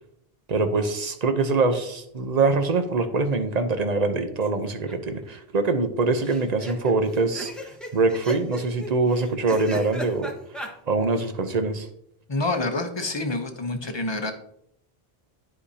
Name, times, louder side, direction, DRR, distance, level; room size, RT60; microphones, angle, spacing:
voice 1, 0.5-10.3 10.9-11.9, right 3 dB, 45° right, 8 dB, 0.9 m, -24 dB
Man laughing hard, 4.4-4.9 5.2-5.3 5.5-5.6 6.2-10.7, right 1 dB, ahead, 1.1 m, -36 dB
voice 2, 12.3-14.3, left 2 dB, 30° left, 6 dB, 0.9 m, -27 dB
12.5 x 4.9 x 2.8 m, 0.74 s
omnidirectional pair, 1.0 m